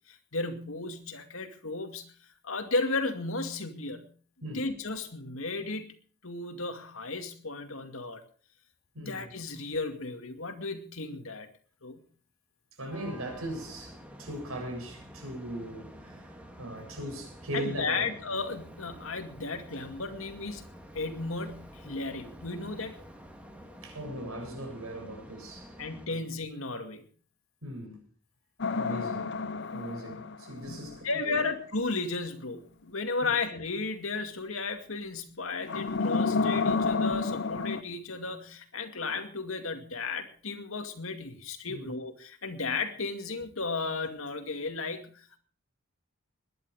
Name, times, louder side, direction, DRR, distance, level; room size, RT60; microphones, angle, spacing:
voice 1, 0.1-2.1 2.4-4.1 4.4-5.9 6.2-8.2 9.0-11.5 11.8-12.0 17.5-20.7 20.9-23.0 25.8-27.1 29.7-29.8 30.5-30.8 31.0-45.4, left 3 dB, 75° left, 2.4 m, -34 dB
voice 2, 8.9-9.3 12.8-18.1 23.8-25.7 26.1-26.2 27.6-28.0 28.8-29.4 29.7-31.4 33.2-33.3 41.7-41.9, right 1 dB, 90° right, 7.7 m, -39 dB
sound 1, 12.9-26.1, equal, 5° right, 2.1 m, -49 dB
sound 2, 28.6-31.0 35.6-37.8, left 4 dB, 55° left, 0.7 m, -30 dB
21.0 x 11.0 x 4.9 m
head